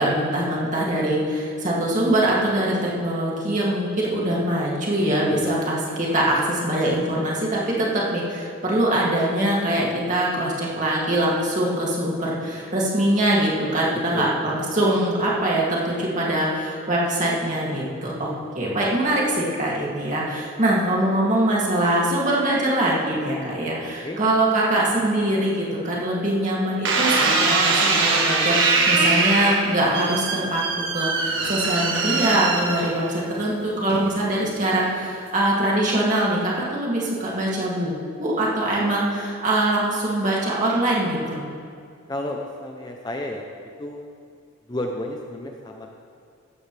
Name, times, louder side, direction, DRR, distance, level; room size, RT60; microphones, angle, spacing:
voice 1, 0.0-37.9 38.2-41.4, right 1 dB, 35° right, -5 dB, 2.5 m, -23 dB
voice 2, 5.3-5.7 14.1-14.6 24.0-24.2 42.1-43.4 43.8-44.0 44.7-45.9, left 1 dB, 20° left, 2 dB, 0.6 m, -31 dB
sound 1, 26.8-33.2 33.9-34.4, right 3 dB, 60° right, 1.5 m, -22 dB
15.0 x 12.5 x 3.3 m, 2.3 s
head